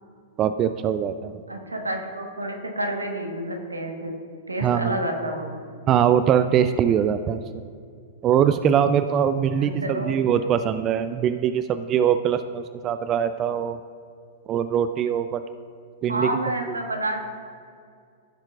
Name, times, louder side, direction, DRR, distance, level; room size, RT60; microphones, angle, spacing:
voice 1, 0.4-1.4 4.6-5.0 5.9-7.4 8.2-13.8 14.5-15.4 16.0-16.3 16.7-16.8, right 9 dB, 30° right, 10 dB, 0.3 m, -22 dB
voice 2, 1.5-4.2 4.5-5.6 9.6-10.4 16.1-17.3, right 1 dB, 85° right, 3 dB, 1.3 m, -29 dB
15.5 x 7.4 x 2.4 m, 2.2 s
figure-of-eight pair, 100°, 0 cm